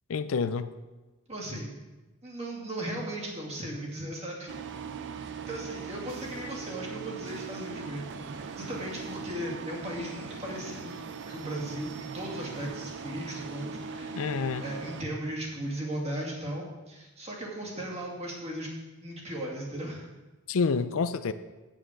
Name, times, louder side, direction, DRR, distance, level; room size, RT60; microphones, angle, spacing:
voice 1, 0.1-0.7 14.1-14.6 20.5-21.3, left 5 dB, 65° left, 12 dB, 0.5 m, -28 dB
voice 2, 1.3-1.8 2.2-4.5 5.5-18.7 19.0-20.1, right 1 dB, 30° right, -3 dB, 2.4 m, -37 dB
sound 1, 4.5-15.0, right 5 dB, 55° right, 0.6 m, -40 dB
8.8 x 7.3 x 6.4 m, 1.2 s
head